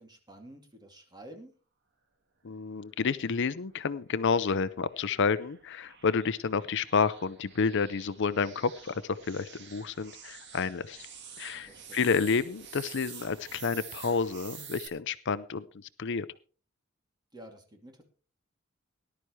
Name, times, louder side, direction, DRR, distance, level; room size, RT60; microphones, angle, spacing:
voice 1, 0.0-1.5 11.6-12.0 17.3-18.0, right 1 dB, 20° right, 3 dB, 2.5 m, -50 dB
voice 2, 2.4-11.1 11.4-16.3, left 5 dB, 60° left, 15 dB, 0.6 m, -30 dB
sound 1, 3.5-14.9, right 7 dB, 55° right, 1.8 m, -49 dB
18.5 x 11.5 x 3.2 m, 0.36 s
head